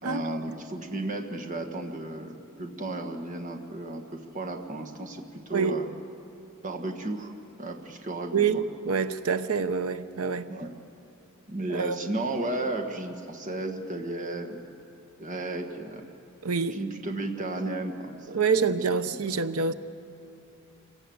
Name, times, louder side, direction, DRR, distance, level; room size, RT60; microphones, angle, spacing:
voice 1, 0.0-5.9 6.6-7.3 7.6-8.6 10.5-10.7 11.5-14.6 15.2-16.0 16.7-18.7, right 2 dB, 35° right, 1.6 m, -34 dB
voice 2, 8.3-10.5 11.7-12.0 16.4-16.8 18.3-19.7, right 5 dB, 80° right, 0.8 m, -26 dB
26.0 x 18.5 x 7.8 m
head